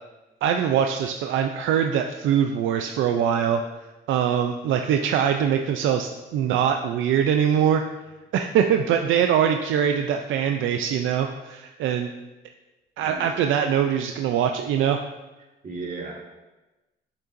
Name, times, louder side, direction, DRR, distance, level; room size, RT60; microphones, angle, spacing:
voice 1, 0.4-3.6 4.1-7.8 8.3-12.1 13.0-15.0, right 8 dB, 80° right, 5 dB, 0.4 m, -23 dB
voice 2, 13.0-13.4 15.6-16.1, right 3 dB, 45° right, -1 dB, 1.7 m, -35 dB
6.6 x 6.6 x 2.5 m, 1.1 s
cardioid pair, 90°, 20 cm